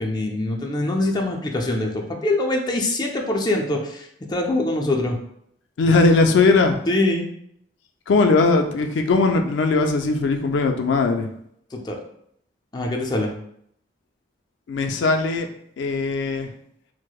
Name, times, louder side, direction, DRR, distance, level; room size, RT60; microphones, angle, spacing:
voice 1, 0.0-5.2 6.9-7.3 11.7-12.0 12.7-13.3, left 2 dB, 25° left, 1 dB, 0.4 m, -24 dB
voice 2, 5.8-6.8 8.1-11.3 14.7-15.5 15.8-16.5, left 3 dB, 90° left, 5 dB, 0.4 m, -19 dB
4.5 x 2.0 x 2.3 m, 0.71 s
head